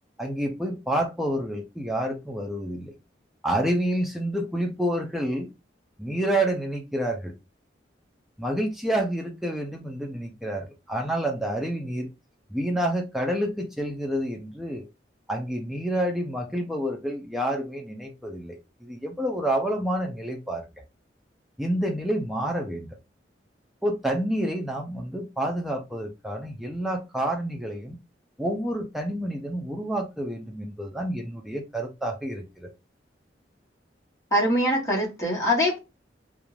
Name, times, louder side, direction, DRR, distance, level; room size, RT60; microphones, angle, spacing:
voice 1, 0.2-2.9 3.4-5.5 6.0-7.3 8.4-12.1 12.5-14.8 15.3-20.7 21.6-22.9 23.8-28.0 28.4-32.7, right 1 dB, ahead, 0.4 m, -28 dB
voice 2, 34.3-35.8, equal, 20° left, 1.0 m, -23 dB
2.5 x 2.2 x 3.1 m
head